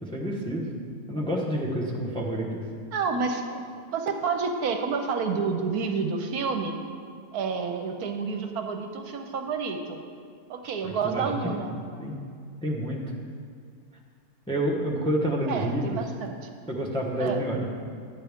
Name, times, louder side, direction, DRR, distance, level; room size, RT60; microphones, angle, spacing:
voice 1, 0.0-0.7 1.1-2.6 11.0-11.3 12.0-12.1 12.6-13.0 14.5-16.0 16.7-17.6, right 1 dB, 5° left, -2 dB, 0.7 m, -28 dB
voice 2, 2.9-3.6 3.9-6.8 7.3-10.0 10.5-11.8 15.5-16.4 17.2-17.5, right 5 dB, 70° right, 5 dB, 1.1 m, -29 dB
11.5 x 8.6 x 3.5 m, 2.2 s
omnidirectional pair, 1.7 m